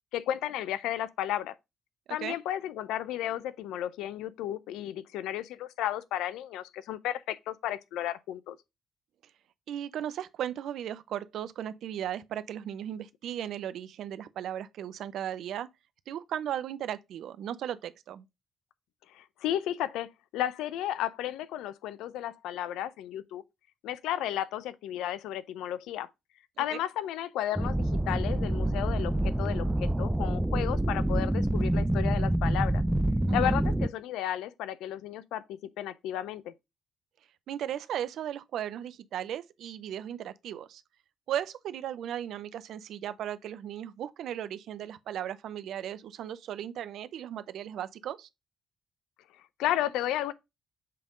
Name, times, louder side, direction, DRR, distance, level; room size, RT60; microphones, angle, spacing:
voice 1, 0.1-1.5 2.1-8.6 19.1-23.4 23.8-26.1 26.6-32.8 33.3-36.5 49.6-50.3, left 12 dB, 80° left, 0.5 m, -33 dB
voice 2, 9.7-15.7 16.1-18.2 26.7-26.8 33.3-33.5 37.5-40.8 41.3-48.3, right 10 dB, 70° right, 0.5 m, -36 dB
sound 1, 27.6-33.9, right 1 dB, 10° right, 0.5 m, -27 dB
7.6 x 3.5 x 3.7 m
hypercardioid pair, 50°, 0 cm